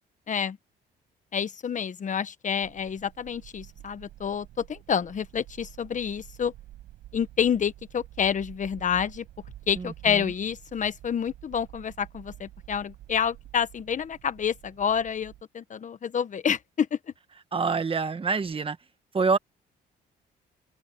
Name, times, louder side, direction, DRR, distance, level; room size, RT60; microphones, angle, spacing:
voice 1, 0.3-0.6 1.3-6.5 7.1-9.2 9.7-17.0, left 7 dB, 45° left, 1.2 m, -28 dB
sound 1, 2.6-15.4, right 15 dB, 85° right, 5.8 m, -49 dB
voice 2, 9.8-10.3 17.5-18.8 19.1-19.4, right 4 dB, 30° right, 1.6 m, -26 dB
open air
cardioid pair, 100°, 19 cm